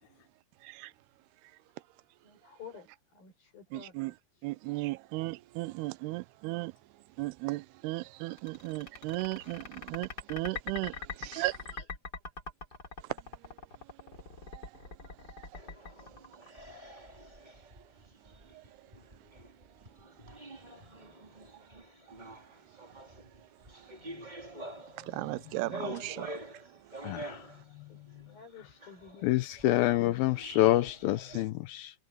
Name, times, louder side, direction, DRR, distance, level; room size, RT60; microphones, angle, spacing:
voice 1, 0.6-0.9 3.7-4.1 4.4-6.8 7.2-11.7 13.4-13.6 14.0-14.2 14.4-14.8 15.3-15.5 18.5-18.6 20.3-20.6 22.2-22.3 23.8-23.9 25.0-26.4 26.7-27.3 31.3-31.4, right 20 dB, 80° right, 2.5 m, -37 dB
voice 2, 2.2-4.5 27.9-28.0 28.3-29.5, left 7 dB, 55° left, 6.7 m, -52 dB
sound 1, 8.3-17.0, left 4 dB, 25° left, 3.9 m, -43 dB
sound 2, 15.5-31.4, right 1 dB, 10° right, 2.9 m, -47 dB
voice 3, 27.0-27.4 29.2-31.9, left 15 dB, 80° left, 2.1 m, -27 dB
omnidirectional pair, 5.0 m